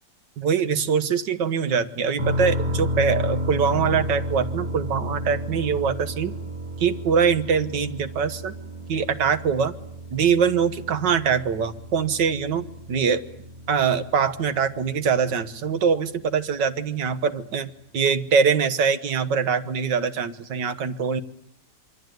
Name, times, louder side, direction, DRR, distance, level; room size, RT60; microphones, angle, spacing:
voice 1, 0.4-6.3 6.8-8.5 8.9-9.7 10.1-13.2 13.7-21.2, right 6 dB, 85° right, 12 dB, 2.0 m, -23 dB
sound 1, 2.2-15.9, equal, 45° right, 6.9 m, -32 dB
27.0 x 24.0 x 9.3 m, 0.70 s
omnidirectional pair, 1.9 m